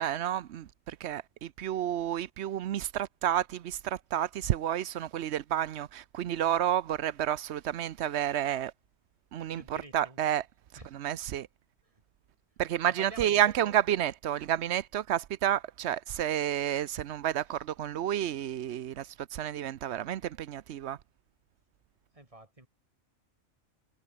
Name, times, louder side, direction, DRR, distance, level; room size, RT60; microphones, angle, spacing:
voice 1, 0.0-8.7 9.3-10.4 10.9-11.5 12.6-21.0, right 11 dB, 65° right, 0.9 m, -30 dB
voice 2, 9.5-10.2 10.8-10.9 12.9-13.8 19.8-19.9 22.1-22.7, right 1 dB, 25° right, 2.9 m, -49 dB
omnidirectional pair, 1.3 m